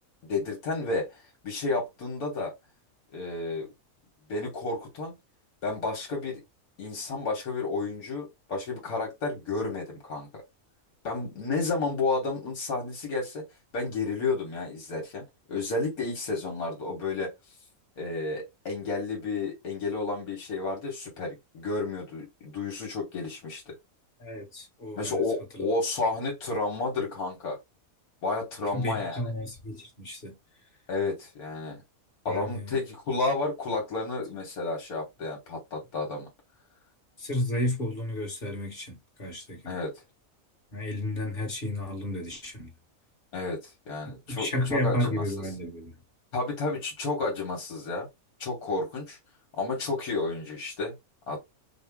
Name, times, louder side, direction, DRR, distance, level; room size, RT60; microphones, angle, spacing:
voice 1, 0.2-2.5 3.1-3.7 4.3-5.1 5.6-6.4 6.8-10.3 11.0-13.4 13.7-15.2 15.5-17.3 18.0-23.7 25.0-27.6 28.2-29.2 30.9-31.8 32.3-36.3 39.7-39.9 43.3-45.2 46.3-48.1 48.4-49.2 49.6-50.9 51.3-51.4, left 3 dB, 80° left, 1.7 m, -31 dB
voice 2, 24.2-25.2 25.5-25.7 28.7-30.3 32.3-32.8 37.2-39.8 40.7-42.7 44.3-45.9, left 1 dB, 40° left, 1.6 m, -32 dB
4.9 x 2.1 x 3.5 m
omnidirectional pair, 1.5 m